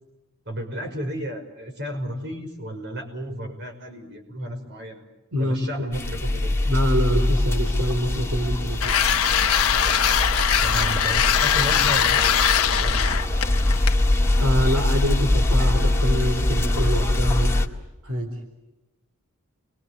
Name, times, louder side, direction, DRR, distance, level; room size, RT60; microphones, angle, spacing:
voice 1, 0.5-5.0 5.4-6.7 10.6-13.0, equal, 50° right, 4 dB, 5.7 m, -33 dB
sound 1, 5.9-17.7, left 1 dB, 10° left, 1.8 m, -23 dB
voice 2, 6.7-8.9 14.4-17.5 18.0-18.3, equal, 75° right, 5 dB, 4.2 m, -25 dB
sound 2, 8.8-14.0, left 9 dB, 70° left, 1.2 m, -21 dB
Water / Liquid, 8.9-13.7, equal, 35° right, 7.0 m, -38 dB
30.0 x 23.0 x 8.4 m, 1.0 s
head